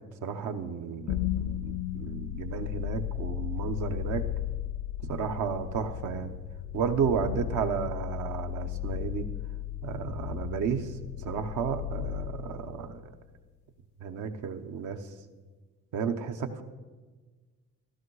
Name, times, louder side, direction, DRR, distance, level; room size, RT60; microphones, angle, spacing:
voice 1, 0.2-4.3 5.0-6.4 6.7-9.3 9.8-10.9 11.2-13.1 14.0-15.0 15.9-16.6, right 6 dB, 85° right, 7 dB, 1.0 m, -32 dB
sound 1, 1.1-13.2, left 13 dB, 70° left, 0.4 m, -35 dB
15.0 x 12.5 x 4.8 m, 1.3 s
cardioid pair, 90°, 30 cm